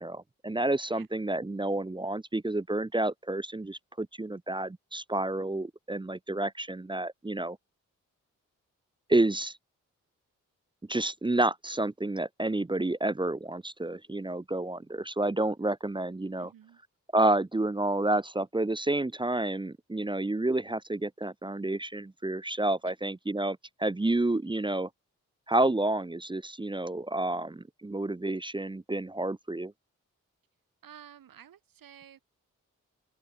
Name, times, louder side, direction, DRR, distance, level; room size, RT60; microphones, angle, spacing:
voice 1, 0.0-7.6 9.1-9.6 10.9-16.5 17.1-24.9 25.5-29.7, right 2 dB, 15° right, 0.7 m, -29 dB
voice 2, 16.4-16.8 22.8-23.0 30.8-32.2, right 9 dB, 80° right, 4.8 m, -52 dB
supercardioid pair, 45°, 33 cm